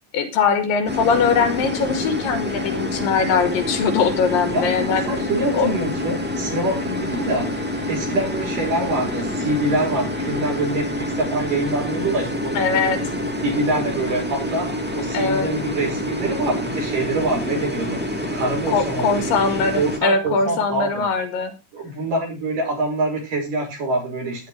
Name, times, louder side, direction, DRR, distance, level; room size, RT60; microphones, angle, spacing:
voice 1, 0.1-5.1 5.5-5.7 12.6-13.0 15.1-15.5 18.7-21.5, left 5 dB, 80° left, 8 dB, 3.8 m, -21 dB
sound 1, 0.9-20.0, left 1 dB, 5° right, 1.7 m, -27 dB
voice 2, 4.5-7.5 7.9-12.6 12.9-13.1 13.4-14.7 14.9-18.0 18.3-19.3 19.6-21.1 21.7-24.5, right 2 dB, 65° right, 0 dB, 7.1 m, -25 dB
14.5 x 10.5 x 3.3 m, 0.26 s
omnidirectional pair, 4.0 m